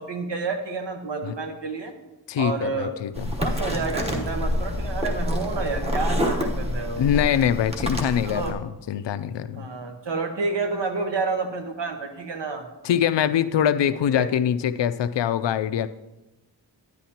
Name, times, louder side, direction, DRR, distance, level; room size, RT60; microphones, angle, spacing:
voice 1, 0.0-1.9 2.4-2.9 3.4-7.0 8.2-8.6 9.5-12.6 14.1-14.3, right 4 dB, 65° right, 5 dB, 1.2 m, -29 dB
voice 2, 2.3-3.3 7.0-9.7 12.8-15.9, left 9 dB, 70° left, 12 dB, 0.5 m, -23 dB
sound 1, 3.1-8.5, left 1 dB, 15° right, 1.0 m, -27 dB
10.5 x 9.8 x 2.9 m, 0.99 s
wide cardioid pair, 145°, 45 cm